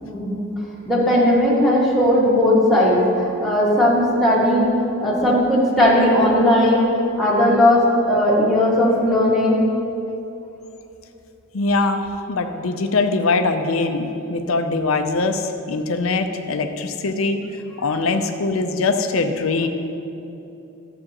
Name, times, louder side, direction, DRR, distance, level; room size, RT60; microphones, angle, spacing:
voice 1, 0.0-0.4 0.9-4.7 5.0-6.9 7.2-9.6, left 1 dB, ahead, -8 dB, 1.9 m, -17 dB
voice 2, 11.5-17.4 17.8-19.7, left 3 dB, 70° left, 6 dB, 0.6 m, -22 dB
12.0 x 7.6 x 3.0 m, 2.9 s
head